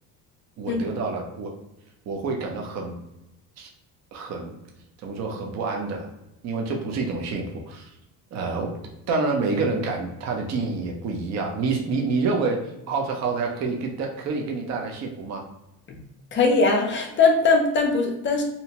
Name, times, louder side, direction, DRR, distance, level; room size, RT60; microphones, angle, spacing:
voice 1, 0.6-1.5 2.1-2.9 3.6-3.7 4.1-4.5 5.0-6.1 6.4-7.9 8.3-8.7 9.1-12.6 12.9-15.4, right 4 dB, 45° right, 1 dB, 0.6 m, -27 dB
voice 2, 16.3-18.4, left 3 dB, 30° left, 3 dB, 0.5 m, -20 dB
2.8 x 2.1 x 2.8 m, 0.90 s
cardioid pair, 135°, 38 cm